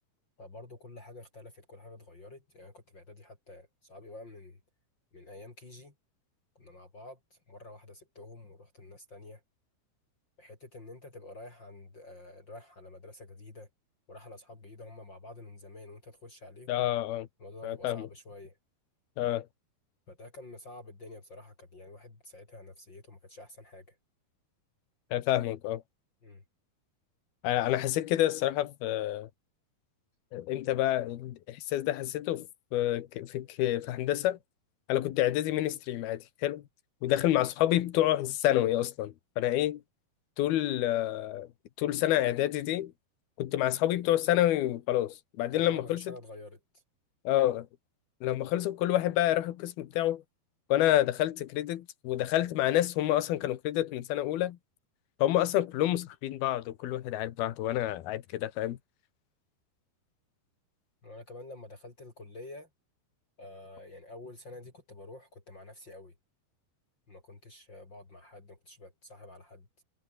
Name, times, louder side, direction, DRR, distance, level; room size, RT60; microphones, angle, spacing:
voice 1, 0.4-4.6 5.1-5.9 6.6-9.4 10.4-13.7 14.1-16.9 17.4-18.6 20.1-24.0 26.2-26.4 37.1-37.3 45.5-46.6 61.0-62.7 63.4-66.1 67.1-69.8, left 2 dB, 30° left, 4.1 m, -48 dB
voice 2, 16.7-17.3 17.6-18.1 19.2-19.5 25.1-25.8 27.4-29.3 30.3-34.4 34.9-36.6 37.0-39.8 40.4-41.5 41.8-42.9 43.4-46.1 47.2-47.7 48.2-50.2 50.7-54.6 55.2-58.8, left 13 dB, 70° left, 3.2 m, -28 dB
omnidirectional pair, 4.7 m